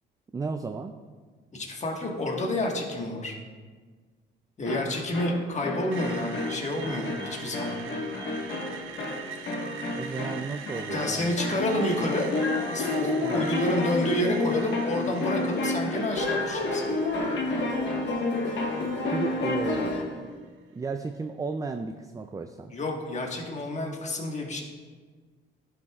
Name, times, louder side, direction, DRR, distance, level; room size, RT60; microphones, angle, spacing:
voice 1, 0.3-1.0 10.0-11.4 13.2-13.5 19.1-22.7, right 4 dB, 15° right, 7 dB, 0.3 m, -34 dB
voice 2, 1.5-3.3 4.6-8.1 10.9-12.3 12.7-16.9 22.7-24.6, left 1 dB, 35° left, 0 dB, 1.5 m, -29 dB
sound 1, 4.7-20.1, left 2 dB, 65° left, 1.5 m, -30 dB
Screech, 5.9-19.9, right 7 dB, 85° right, 0.8 m, -43 dB
11.5 x 5.9 x 2.4 m, 1.5 s
cardioid pair, 90°, 20 cm